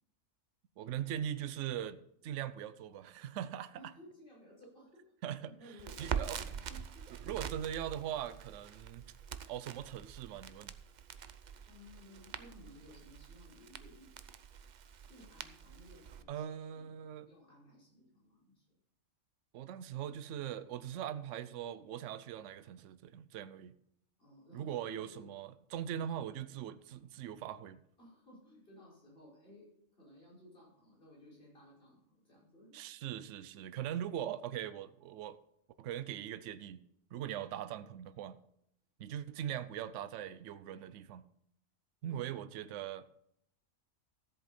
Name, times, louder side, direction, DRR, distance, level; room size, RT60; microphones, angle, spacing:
voice 1, 0.8-3.8 5.2-5.5 6.0-6.4 7.2-9.1 9.5-10.7 16.3-17.3 19.5-23.7 24.5-27.8 32.7-35.4 35.8-36.8 37.1-38.4 39.0-41.2 42.0-43.0, right 10 dB, 70° right, 14 dB, 0.9 m, -41 dB
voice 2, 3.8-5.0 5.4-7.0 11.7-14.1 15.1-16.4 16.7-16.9 17.2-18.6 24.2-25.3 28.0-29.6 29.9-32.8 37.2-37.3 42.0-42.3, left 1 dB, 45° left, -6 dB, 5.6 m, -57 dB
Crackle, 5.8-16.2, right 7 dB, 55° right, 0.5 m, -44 dB
14.0 x 7.9 x 4.3 m, 0.73 s
omnidirectional pair, 1.4 m